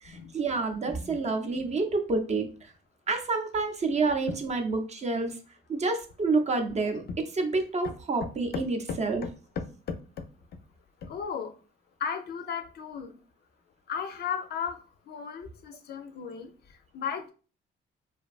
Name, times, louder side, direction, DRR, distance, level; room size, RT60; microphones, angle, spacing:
voice 1, 0.0-2.7 3.1-5.4 5.7-7.0 7.3-9.2, right 3 dB, 35° right, 5 dB, 0.5 m, -28 dB
voice 2, 8.9-10.2 11.0-11.5 12.0-13.2 13.9-16.5 16.9-17.3, left 6 dB, 55° left, 8 dB, 0.4 m, -35 dB
2.5 x 2.2 x 2.3 m, 0.36 s
cardioid pair, 90°, 20 cm